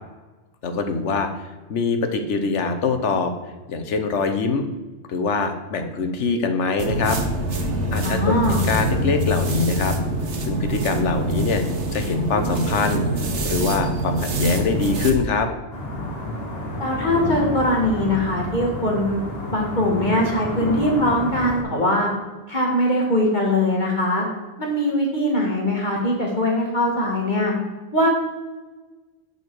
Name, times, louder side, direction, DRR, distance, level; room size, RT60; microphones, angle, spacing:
voice 1, 0.6-1.3 1.7-3.3 3.7-4.7 5.1-7.2 7.9-10.0 10.4-11.6 11.9-15.5, left 4 dB, 80° left, 6 dB, 1.2 m, -23 dB
sound 1, 6.8-15.2, right 1 dB, 75° right, 1.3 m, -25 dB
voice 2, 8.0-8.6 16.8-19.2 19.5-22.1 22.5-24.2 24.6-27.5 27.9-28.1, left 1 dB, 40° left, -1 dB, 1.7 m, -21 dB
sound 2, 15.7-21.6, left 1 dB, 55° left, 2.0 m, -30 dB
8.2 x 5.5 x 4.6 m, 1.2 s
omnidirectional pair, 1.2 m